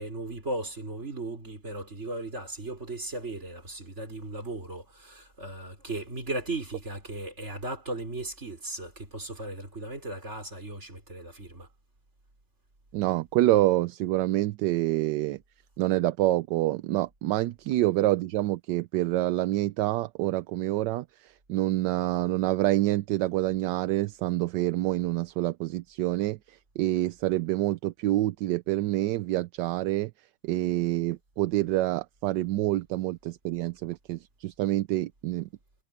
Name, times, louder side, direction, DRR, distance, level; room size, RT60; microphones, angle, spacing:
voice 1, 0.0-11.7, right 2 dB, 35° right, 5.0 m, -36 dB
voice 2, 12.9-15.4 15.8-30.1 30.4-35.5, right 16 dB, 75° right, 1.2 m, -27 dB
omnidirectional pair, 2.0 m